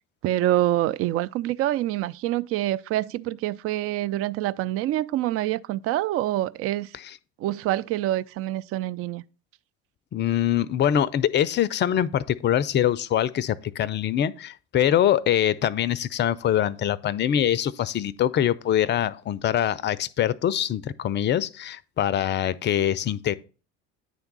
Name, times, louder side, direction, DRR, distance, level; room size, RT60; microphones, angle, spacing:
voice 1, 0.2-6.9 7.4-9.2, right 14 dB, 40° right, 0.4 m, -26 dB
voice 2, 10.1-23.3, left 10 dB, 30° left, 0.5 m, -24 dB
9.3 x 3.5 x 5.3 m
hypercardioid pair, 60°, 36 cm